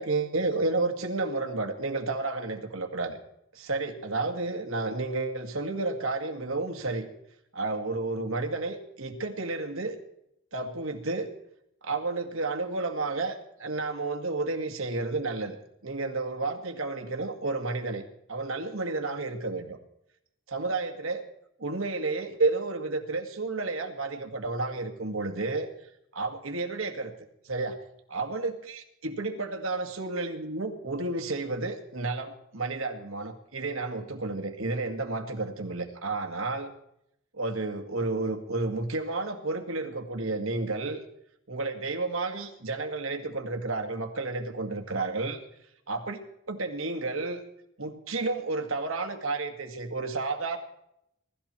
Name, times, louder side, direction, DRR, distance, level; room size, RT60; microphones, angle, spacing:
voice 1, 0.0-3.2 3.5-7.1 7.5-10.0 10.5-11.3 11.8-15.6 15.8-18.0 18.3-19.8 20.5-21.2 21.6-25.7 26.1-27.1 27.4-27.8 28.1-36.7 37.3-41.0 41.5-45.4 45.9-46.2 46.5-47.4 47.8-50.6, right 3 dB, 80° right, 5 dB, 2.0 m, -31 dB
22.5 x 13.0 x 4.4 m, 0.78 s
head